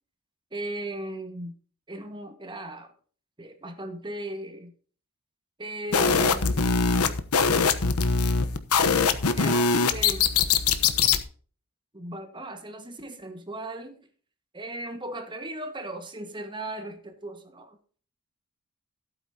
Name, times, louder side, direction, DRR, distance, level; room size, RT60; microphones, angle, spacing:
voice 1, 0.5-1.5 1.9-2.9 3.4-4.7 5.6-6.9 9.4-10.3 11.9-14.1 14.5-17.8, right 1 dB, 20° right, 1.7 m, -37 dB
sound 1, 5.9-11.2, left 5 dB, 90° left, 1.1 m, -22 dB
15.0 x 8.7 x 2.9 m
head